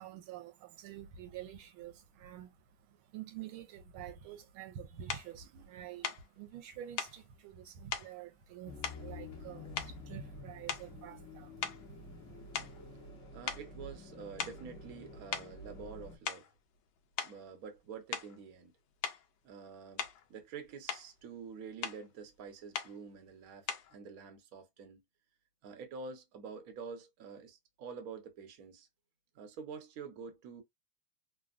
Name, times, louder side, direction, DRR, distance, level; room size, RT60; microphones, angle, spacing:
voice 1, 0.0-12.9, right 10 dB, 80° right, 1.4 m, -48 dB
sound 1, 5.1-5.3 6.0-6.3 7.0-7.2 7.9-8.1 8.8-9.4 9.8-10.1 10.6-11.0 11.6-13.2 13.5-13.7 14.4-14.7 15.3-15.5 16.1-16.5 17.2-17.4 18.1-18.4 19.0-19.3 20.0-20.3 20.7-21.1 21.8-22.0 22.7-23.0 23.7-24.0, left 7 dB, 70° left, 1.1 m, -39 dB
sound 2, 8.7-16.2, left 2 dB, 50° left, 1.0 m, -49 dB
voice 2, 13.3-16.5 17.2-18.7 19.4-25.0 25.6-28.9 29.3-30.6, right 5 dB, 55° right, 1.1 m, -47 dB
3.5 x 2.2 x 2.4 m
omnidirectional pair, 2.3 m